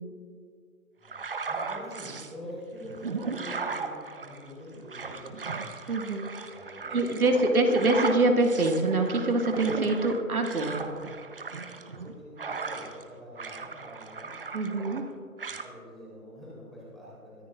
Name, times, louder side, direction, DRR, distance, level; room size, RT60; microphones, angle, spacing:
voice 1, 1.0-3.9 4.2-5.4 6.5-7.8 12.0-14.3 15.4-17.4, equal, ahead, -10 dB, 3.5 m, -45 dB
sound 1, 1.1-2.3 2.8-13.1 13.4-15.1 15.4-15.7, right 4 dB, 40° right, 0.8 m, -37 dB
voice 2, 5.9-6.3 6.9-10.9 14.5-15.0, right 2 dB, 70° right, 2 dB, 2.0 m, -24 dB
23.0 x 14.0 x 2.5 m, 2.2 s
figure-of-eight pair, 155°, 45 cm